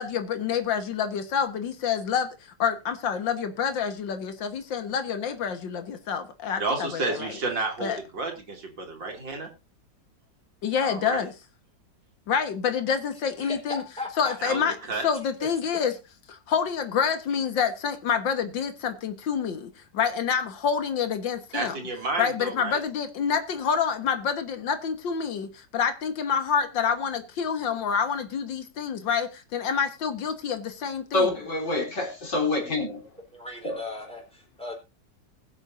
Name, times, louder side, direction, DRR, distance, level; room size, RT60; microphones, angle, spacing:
voice 1, 0.0-7.3 7.8-8.0 10.6-11.3 12.3-13.8 14.2-14.8 15.0-15.9 16.3-21.8 22.2-31.4, left 7 dB, 90° left, 2.1 m, -27 dB
voice 2, 6.6-9.5 10.8-11.2 14.4-14.6 14.9-15.0 21.5-22.8, right 3 dB, 80° right, 3.4 m, -31 dB
voice 3, 13.4-14.4 15.4-15.5 33.3-34.7, left 2 dB, 5° left, 4.3 m, -37 dB
voice 4, 31.1-33.0 33.6-33.8, left 2 dB, 70° left, 4.4 m, -26 dB
21.5 x 7.2 x 2.6 m
omnidirectional pair, 2.0 m